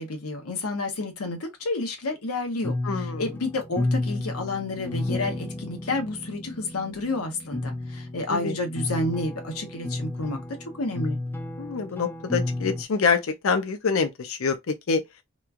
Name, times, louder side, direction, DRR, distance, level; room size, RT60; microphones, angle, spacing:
voice 1, 0.0-10.4 10.7-11.2, left 2 dB, 85° left, 0.9 m, -30 dB
sound 1, 2.6-12.8, left 2 dB, 10° left, 0.3 m, -32 dB
voice 2, 2.8-3.2 8.3-8.6 11.6-14.6 14.9-15.0, left 5 dB, 65° left, 0.5 m, -25 dB
3.0 x 2.3 x 2.4 m
head